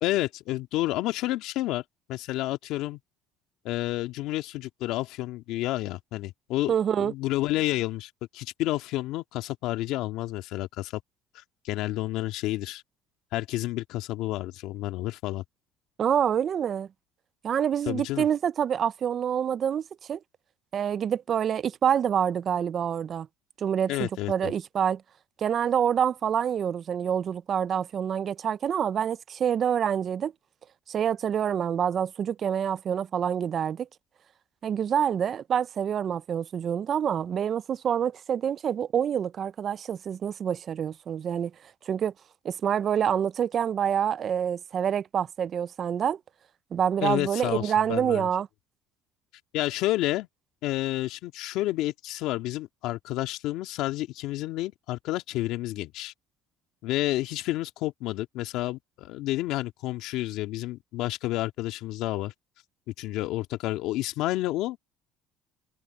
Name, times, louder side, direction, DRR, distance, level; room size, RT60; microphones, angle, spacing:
voice 1, 0.0-1.8 2.1-3.0 3.6-6.7 7.0-11.0 11.3-12.8 13.3-15.4 17.9-18.3 23.9-24.5 47.0-48.3 49.5-50.3 50.6-56.1 56.8-62.3 62.9-64.8, left 16 dB, 70° left, 2.1 m, -30 dB
voice 2, 6.7-7.1 16.0-16.9 17.4-19.8 20.1-20.2 20.7-23.3 23.6-25.0 25.4-30.3 30.9-33.9 34.6-41.5 41.9-42.1 42.4-46.2 46.7-48.5, right 8 dB, 45° right, 0.6 m, -27 dB
supercardioid pair, 90°, 0 cm